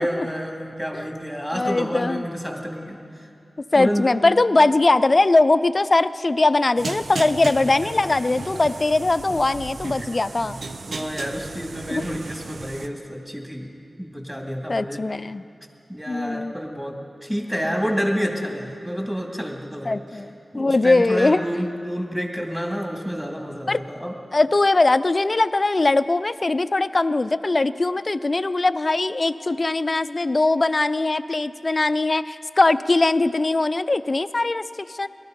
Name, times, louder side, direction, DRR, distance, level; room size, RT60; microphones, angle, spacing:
voice 1, 0.0-3.0 3.7-4.0 10.0-10.1 10.9-13.7 14.0-15.0 15.9-20.0 20.5-24.1, equal, 5° right, 1 dB, 2.4 m, -29 dB
voice 2, 1.5-2.2 3.7-10.6 11.9-12.0 14.7-15.4 16.1-16.5 19.8-20.3 20.5-21.4 23.7-23.8 24.3-35.1, left 2 dB, 45° left, 14 dB, 0.4 m, -20 dB
sound 1, 6.8-12.9, right 3 dB, 80° right, 0.6 m, -35 dB
18.5 x 13.0 x 5.3 m, 2.8 s
cardioid pair, 40°, 0 cm